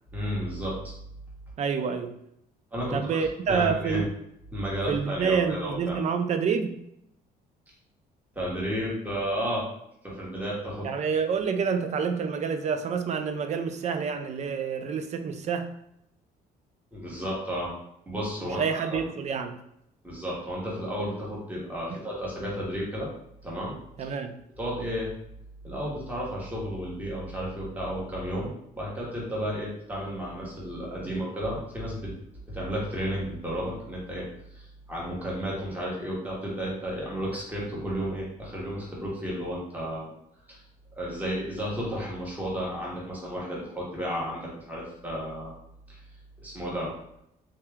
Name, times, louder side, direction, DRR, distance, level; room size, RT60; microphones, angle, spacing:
voice 1, 0.1-0.8 2.7-3.0 3.5-4.1 4.5-6.0 8.3-9.7 10.0-10.9 16.9-17.7 18.1-18.6 18.9-19.0 20.0-23.1 23.4-23.7 24.0-24.1 24.6-25.1 25.6-32.1 32.5-34.3 34.5-40.1 40.5-40.6 41.0-45.5 45.9-46.0 46.4-46.9, equal, 10° right, -5 dB, 1.3 m, -32 dB
voice 2, 1.6-2.1 2.9-4.1 4.9-6.7 10.8-15.7 18.5-19.6 24.0-24.4, right 6 dB, 45° right, 7 dB, 0.5 m, -28 dB
3.4 x 2.7 x 3.5 m, 0.77 s
cardioid pair, 110°, 17 cm